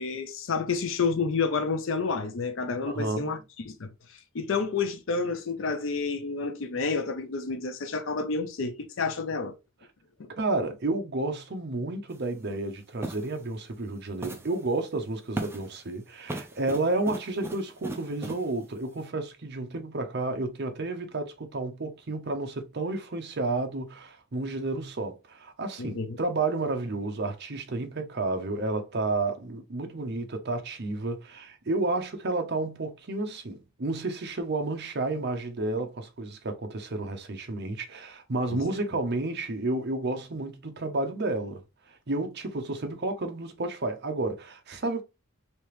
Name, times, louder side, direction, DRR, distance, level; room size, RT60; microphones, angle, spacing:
voice 1, 0.0-3.4 3.7-3.9 4.3-9.5 10.2-10.3 25.8-26.2 38.5-38.6, left 4 dB, 65° left, 0.5 m, -29 dB
voice 2, 2.8-3.4 10.4-41.6 42.1-45.0, right 2 dB, 50° right, 0.7 m, -31 dB
sound 1, 12.1-12.3 13.0-13.3 14.2-14.6 15.3-15.8 16.3-18.5, right 2 dB, 10° right, 0.4 m, -37 dB
3.3 x 2.8 x 3.0 m
head